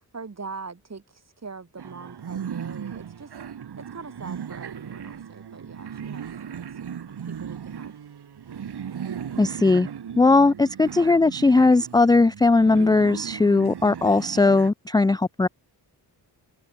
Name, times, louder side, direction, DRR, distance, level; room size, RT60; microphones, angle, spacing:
voice 1, 0.1-1.0 1.4-3.3 3.8-6.3 6.8-6.9 7.2-7.9, right 4 dB, 40° right, 6.3 m, -41 dB
sound 1, 1.8-14.7, right 8 dB, 65° right, 2.2 m, -37 dB
voice 2, 9.4-9.9 10.2-15.5, left 3 dB, 10° left, 0.3 m, -18 dB
wide cardioid pair, 110°, 42 cm